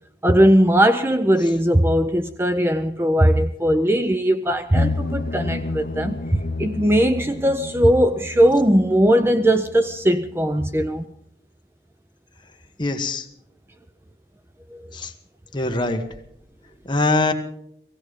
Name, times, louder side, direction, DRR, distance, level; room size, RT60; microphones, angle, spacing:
voice 1, 0.2-11.0 14.7-14.8, equal, 15° right, 0.5 m, -19 dB
sound 1, 4.7-10.5 10.8-10.9, left 2 dB, 55° left, 0.7 m, -30 dB
voice 2, 12.8-13.2 14.9-15.1 15.5-16.0 16.9-17.3, left 2 dB, 25° left, 1.4 m, -22 dB
17.0 x 16.5 x 5.1 m
head